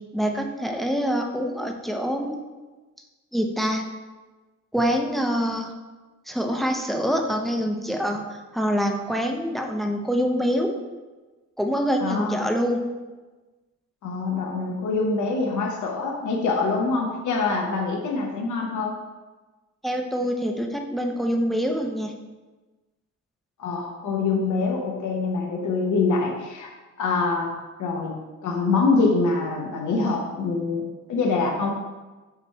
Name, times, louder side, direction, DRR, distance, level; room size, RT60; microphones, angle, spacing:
voice 1, 0.1-2.4 3.3-3.8 4.7-5.7 6.3-10.7 11.6-12.8 19.8-22.1, equal, ahead, 3 dB, 0.5 m, -25 dB
voice 2, 12.0-12.5 14.0-18.9 23.6-26.7 27.0-27.5 27.8-28.1 28.4-31.7, left 4 dB, 85° left, 0 dB, 0.9 m, -25 dB
6.8 x 3.1 x 4.5 m, 1.2 s
wide cardioid pair, 140°, 30 cm